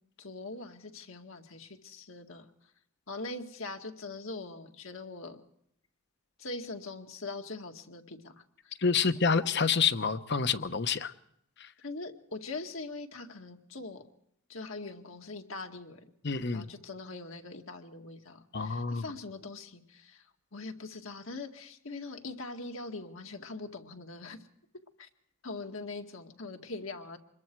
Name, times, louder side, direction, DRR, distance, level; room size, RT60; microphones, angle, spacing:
voice 1, 0.2-2.5 3.1-5.4 6.4-8.4 11.8-14.0 14.5-16.1 16.5-20.3 20.5-24.4 25.0-25.1 25.4-27.2, left 3 dB, 70° left, 4 dB, 2.1 m, -42 dB
voice 2, 8.8-11.1 11.6-11.7 16.2-16.7 18.5-19.0, left 5 dB, 55° left, 12 dB, 1.0 m, -28 dB
26.0 x 21.5 x 4.7 m, 0.73 s
head